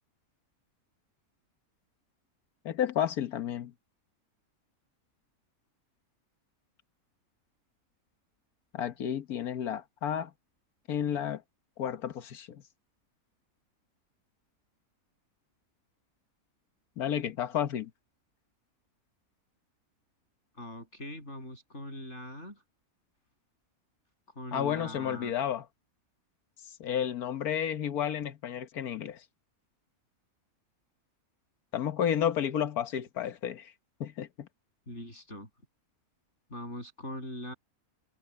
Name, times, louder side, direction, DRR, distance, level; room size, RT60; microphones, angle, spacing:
voice 1, 2.6-3.7 8.7-10.3 10.9-11.4 11.8-12.6 17.0-17.9 24.5-25.6 26.8-29.2 31.7-33.7 34.0-34.5, left 9 dB, 85° left, 1.6 m, -31 dB
voice 2, 20.5-22.6 24.3-25.3 34.9-35.5 36.5-37.5, left 1 dB, 50° left, 8.2 m, -42 dB
omnidirectional pair, 1.5 m